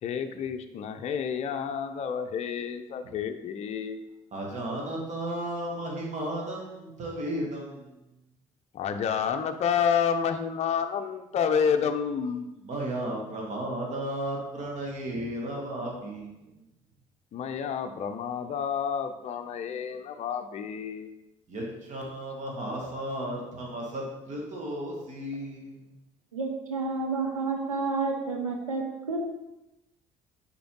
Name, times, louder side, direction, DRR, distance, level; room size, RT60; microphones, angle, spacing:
voice 1, 0.0-4.0 8.7-12.4 17.3-21.1, left 7 dB, 40° left, 7 dB, 0.6 m, -29 dB
voice 2, 4.3-7.9 12.6-16.5 21.5-25.8, right 1 dB, 45° right, -2 dB, 1.9 m, -34 dB
voice 3, 26.3-29.2, right 3 dB, 85° right, 2 dB, 0.8 m, -30 dB
6.8 x 4.6 x 3.8 m, 0.95 s
figure-of-eight pair, 55°, 17 cm